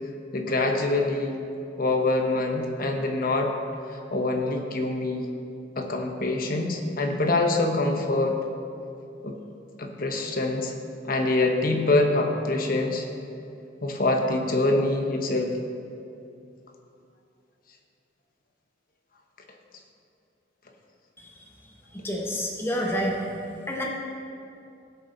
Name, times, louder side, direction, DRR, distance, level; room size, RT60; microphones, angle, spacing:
voice 1, 0.3-1.4 1.8-3.5 3.9-5.3 5.8-8.4 9.2-9.4 9.8-10.7 11.0-13.1 13.8-15.6, left 2 dB, 50° left, 3 dB, 1.0 m, -25 dB
voice 2, 22.0-23.2 23.7-23.8, equal, 10° left, -2 dB, 1.1 m, -27 dB
16.0 x 6.7 x 4.0 m, 2.6 s
head